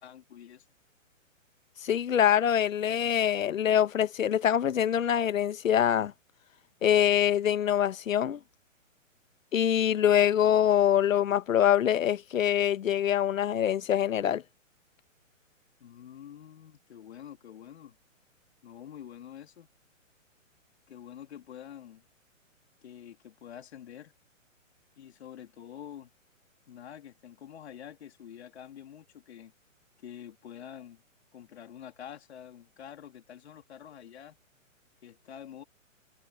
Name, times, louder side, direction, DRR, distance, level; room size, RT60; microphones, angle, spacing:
voice 1, 0.0-0.6 15.8-18.0 18.6-19.7 20.9-22.0 22.8-24.1 25.0-26.1 26.7-29.5 30.0-31.0 31.3-34.4 35.0-35.6, left 9 dB, 55° left, 3.0 m, -47 dB
voice 2, 1.8-6.1 6.8-8.4 9.5-14.4, left 10 dB, 75° left, 1.2 m, -24 dB
hypercardioid pair, 165°, 40 cm